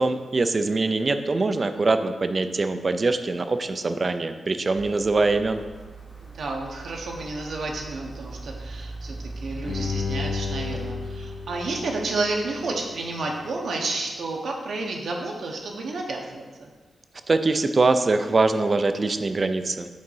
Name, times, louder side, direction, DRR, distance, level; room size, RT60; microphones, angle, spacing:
voice 1, 0.0-5.6 17.3-19.9, right 3 dB, 35° right, 9 dB, 0.4 m, -23 dB
sound 1, 4.8-13.0 13.4-13.5, right 2 dB, 5° right, 0.9 m, -39 dB
voice 2, 6.2-16.7, right 2 dB, 75° right, 0 dB, 0.9 m, -31 dB
Bowed string instrument, 9.6-12.8 13.2-13.3, left 6 dB, 70° left, 0.7 m, -33 dB
5.3 x 3.9 x 5.5 m, 1.4 s
wide cardioid pair, 105°, 0 cm